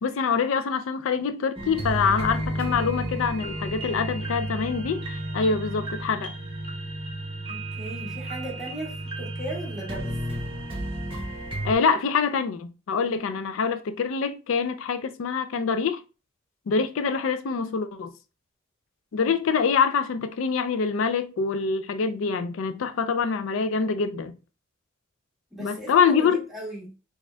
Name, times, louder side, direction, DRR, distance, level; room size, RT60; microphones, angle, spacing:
voice 1, 0.0-6.3 11.6-16.0 16.7-18.1 19.1-24.3 25.6-26.4, left 5 dB, 90° left, 0.4 m, -25 dB
sound 1, 1.6-11.7, right 1 dB, 25° right, 1.1 m, -32 dB
voice 2, 7.5-10.2 19.2-19.3 25.5-26.9, right 1 dB, ahead, 1.8 m, -37 dB
4.2 x 3.5 x 2.3 m
head